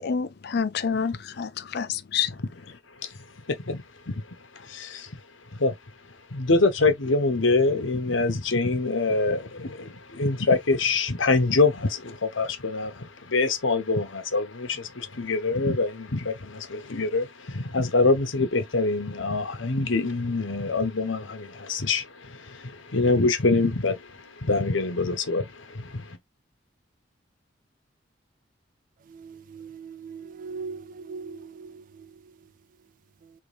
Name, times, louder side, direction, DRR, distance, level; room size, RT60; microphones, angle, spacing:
voice 1, 0.0-2.3, left 6 dB, 55° left, 0.5 m, -28 dB
voice 2, 3.5-4.2 4.5-5.1 5.6-5.7 6.3-26.2, left 3 dB, 85° left, 1.2 m, -25 dB
voice 3, 29.1-31.8, right 5 dB, 45° right, 0.3 m, -39 dB
3.9 x 2.9 x 3.4 m
head